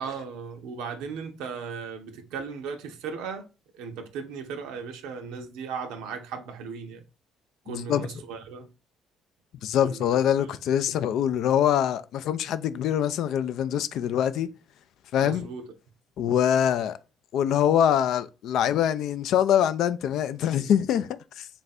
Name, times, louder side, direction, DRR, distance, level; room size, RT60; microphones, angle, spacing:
voice 1, 0.0-3.5 3.7-7.0 7.7-8.7 9.8-10.5 15.2-15.6, right 5 dB, 90° right, 0.6 m, -37 dB
voice 2, 7.7-8.1 9.6-14.5 15.1-15.5 16.2-17.0 17.3-21.5, left 9 dB, 75° left, 0.3 m, -24 dB
3.4 x 2.5 x 4.0 m
cardioid pair, 80°, 0 cm